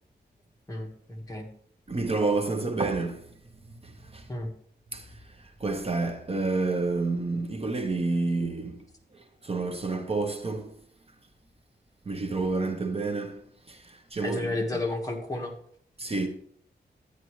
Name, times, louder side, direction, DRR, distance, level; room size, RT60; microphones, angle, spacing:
voice 1, 0.7-1.5 4.3-4.5 14.2-15.5, left 2 dB, 20° left, 1.6 m, -32 dB
voice 2, 1.9-3.3 3.8-4.3 4.9-8.8 9.1-10.8 12.1-13.4 13.7-14.5 16.0-16.3, right 3 dB, 35° right, 0.9 m, -29 dB
10.5 x 9.8 x 3.2 m
wide cardioid pair, 155°, 18 cm